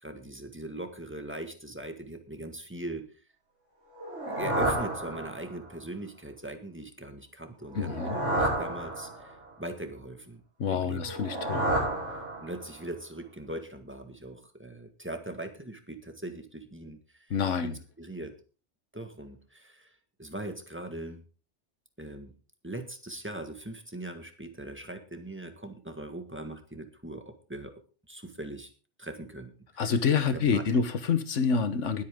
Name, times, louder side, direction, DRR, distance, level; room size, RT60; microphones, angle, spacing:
voice 1, 0.0-3.1 4.3-10.4 10.7-11.1 12.1-17.3 17.6-18.4 18.9-19.9 20.2-21.2 22.0-22.3 22.6-27.7 28.1-28.7 29.0-29.5 30.3-30.8, right 1 dB, 10° right, 6 dB, 1.7 m, -40 dB
sound 1, 3.9-5.7 7.6-9.5 11.0-12.8, right 1 dB, 75° right, 5.7 m, -31 dB
voice 2, 7.7-8.2 10.6-11.7 17.3-17.8 29.8-32.0, left 6 dB, 85° left, 11 dB, 1.5 m, -27 dB
20.5 x 8.6 x 3.7 m, 0.36 s
omnidirectional pair, 1.2 m